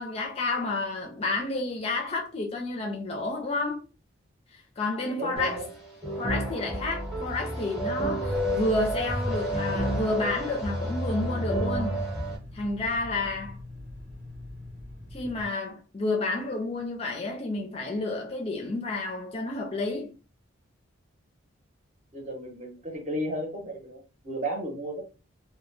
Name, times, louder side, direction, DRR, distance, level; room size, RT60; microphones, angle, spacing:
voice 1, 0.0-3.8 4.8-5.6 6.2-12.0 12.5-13.6 15.1-20.1, left 2 dB, 30° left, 0.4 m, -30 dB
voice 2, 5.2-5.7 22.1-25.0, right 1 dB, 35° right, 0.8 m, -34 dB
sound 1, 5.4-12.4, equal, ahead, 0.8 m, -30 dB
sound 2, 8.5-15.5, left 1 dB, 75° right, 1.1 m, -44 dB
2.1 x 2.1 x 3.1 m
head